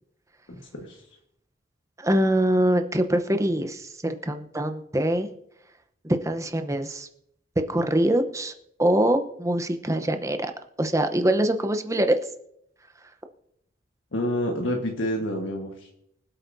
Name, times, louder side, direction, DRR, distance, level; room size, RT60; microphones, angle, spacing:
voice 1, 2.0-5.3 6.0-7.1 7.7-8.5 8.8-10.5 10.8-12.2, right 1 dB, 15° right, 7 dB, 0.8 m, -24 dB
voice 2, 14.1-15.9, equal, 80° left, 0 dB, 1.5 m, -28 dB
24.5 x 8.3 x 2.7 m, 0.74 s
head